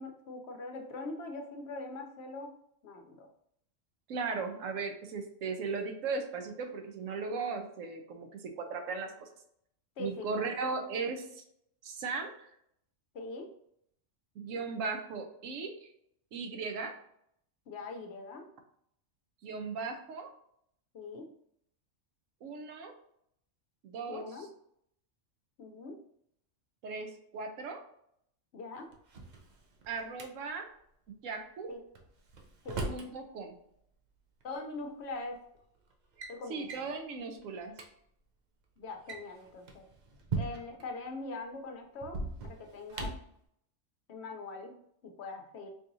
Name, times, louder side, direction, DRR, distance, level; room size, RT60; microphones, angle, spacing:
voice 1, 0.0-2.5 2.8-3.3 10.0-10.5 13.1-13.5 17.7-18.5 20.9-21.3 24.1-24.5 25.6-26.0 28.5-28.9 31.7-31.8 32.6-32.9 34.4-35.4 36.3-37.0 38.8-39.8 40.4-43.1 44.1-44.7 45.0-45.7, left 3 dB, 65° left, 4 dB, 0.8 m, -42 dB
voice 2, 4.1-9.3 10.0-11.4 11.8-12.5 14.4-15.9 16.3-16.9 19.4-20.3 22.4-22.9 23.8-24.2 26.8-27.8 29.9-30.7 31.1-31.7 32.9-33.6 36.5-37.7, right 4 dB, 85° right, 5 dB, 1.0 m, -37 dB
Drawer open or close, 28.9-30.3 31.9-33.1 34.4-34.5 35.3-35.6 35.9-36.3 36.7-36.9 37.4-37.5 37.7-37.9 38.9-40.9 42.0-43.3, right 3 dB, 50° right, 0.5 m, -39 dB
4.5 x 2.9 x 2.6 m, 0.71 s
omnidirectional pair, 1.3 m